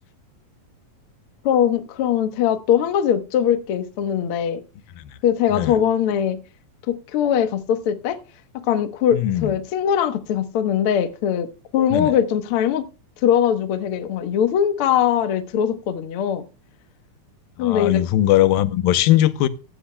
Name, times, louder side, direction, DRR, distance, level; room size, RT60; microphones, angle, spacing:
voice 1, 1.4-4.6 5.2-6.4 6.9-8.2 8.5-12.9 13.2-16.4 17.6-18.0, left 9 dB, 70° left, 1.3 m, -21 dB
voice 2, 9.1-9.5 11.9-12.1 17.6-19.5, left 13 dB, 85° left, 2.5 m, -19 dB
15.5 x 11.5 x 2.2 m
omnidirectional pair, 4.1 m